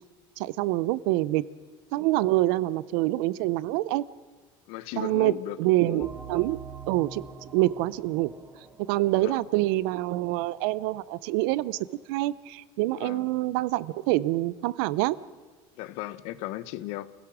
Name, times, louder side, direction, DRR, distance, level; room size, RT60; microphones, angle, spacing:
voice 1, 0.4-1.4 1.9-4.1 5.0-6.6 6.9-7.2 7.5-8.3 8.9-11.8 12.1-15.2, right 17 dB, 80° right, 18 dB, 0.7 m, -26 dB
voice 2, 4.7-5.6 5.9-6.1 9.2-9.5 12.9-13.3 15.8-17.1, left 15 dB, 65° left, 16 dB, 0.9 m, -36 dB
sound 1, 6.0-11.3, right 5 dB, 15° right, 1.6 m, -46 dB
28.5 x 16.5 x 6.2 m, 1.4 s
cardioid pair, 160°, 11 cm